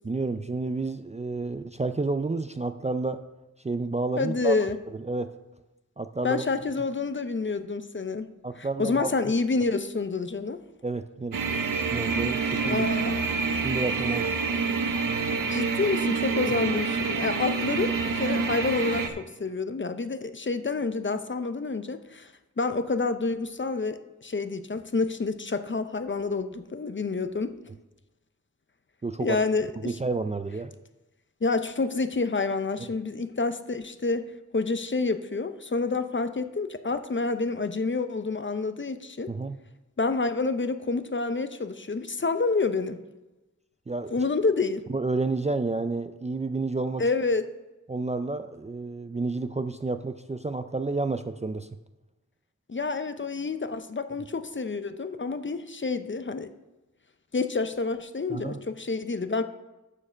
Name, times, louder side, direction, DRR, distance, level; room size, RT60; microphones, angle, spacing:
voice 1, 0.0-3.2 3.6-4.6 5.0-5.3 6.0-6.4 8.4-9.1 10.8-11.4 11.9-12.9 13.6-14.4 29.0-29.4 29.8-30.7 39.3-39.6 43.9-44.1 44.9-47.0 47.9-51.7 58.3-58.6, right 3 dB, 20° right, 9 dB, 0.3 m, -30 dB
voice 2, 4.2-4.8 6.2-8.3 8.6-10.6 12.6-13.3 15.5-22.3 22.6-27.5 29.2-30.0 31.4-34.3 34.5-39.3 40.0-43.0 44.1-44.8 47.0-47.4 52.7-56.5 57.3-59.4, left 3 dB, 35° left, 10 dB, 0.6 m, -28 dB
sound 1, 11.3-19.1, right 4 dB, 90° right, 0.8 m, -27 dB
7.3 x 6.6 x 6.2 m, 1.1 s
wide cardioid pair, 75°, 32 cm